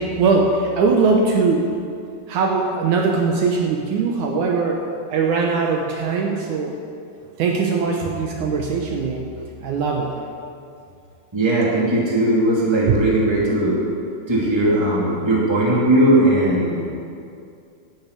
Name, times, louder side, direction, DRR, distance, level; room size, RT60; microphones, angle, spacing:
voice 1, 0.0-1.7 2.3-6.7 7.4-9.3 9.6-10.1, right 4 dB, 70° right, 1 dB, 2.2 m, -20 dB
voice 2, 11.3-13.8 14.3-16.9, right 1 dB, 10° right, -5 dB, 2.0 m, -18 dB
12.0 x 7.2 x 8.3 m, 2.4 s
omnidirectional pair, 3.9 m